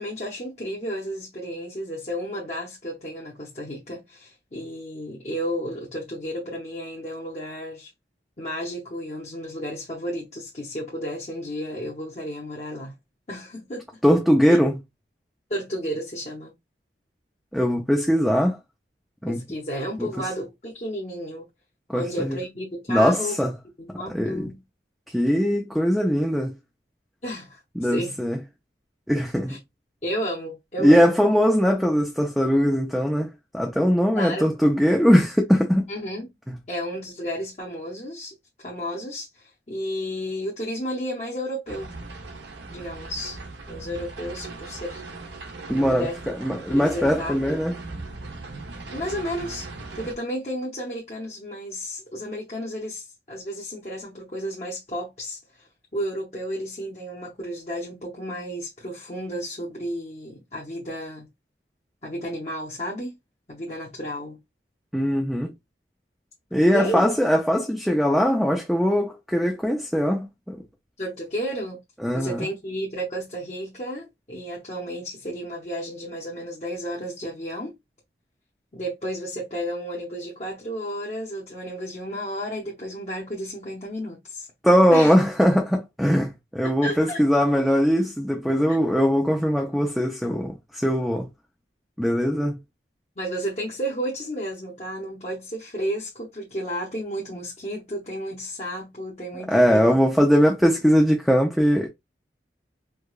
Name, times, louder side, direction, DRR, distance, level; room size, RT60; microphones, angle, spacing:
voice 1, 0.0-7.9 8.4-13.0 13.3-14.0 14.5-14.6 15.5-16.5 19.3-21.4 21.9-23.5 23.8-24.6 27.2-28.2 29.5-29.6 30.0-31.2 34.1-34.6 35.9-36.3 36.7-42.0 42.7-43.4 43.7-45.0 45.7-46.2 46.5-47.6 48.9-49.7 49.9-61.3 62.0-63.2 63.5-64.4 66.7-67.1 71.0-71.8 72.1-77.8 78.7-84.5 84.9-85.1 86.6-87.2 88.7-88.8 93.2-100.0, equal, 40° left, 0.8 m, -32 dB
voice 2, 14.0-14.7 17.5-18.6 19.2-19.4 20.0-20.1 21.9-22.4 22.9-23.5 24.1-24.5 25.1-26.5 27.8-28.4 29.1-29.6 30.8-35.9 36.5-36.6 45.7-47.8 64.9-65.5 66.5-70.6 72.0-72.5 84.6-91.3 92.0-92.6 99.5-101.9, equal, ahead, 0.4 m, -21 dB
sound 1, 41.7-50.2, right 3 dB, 80° right, 0.8 m, -39 dB
4.6 x 2.3 x 2.3 m
head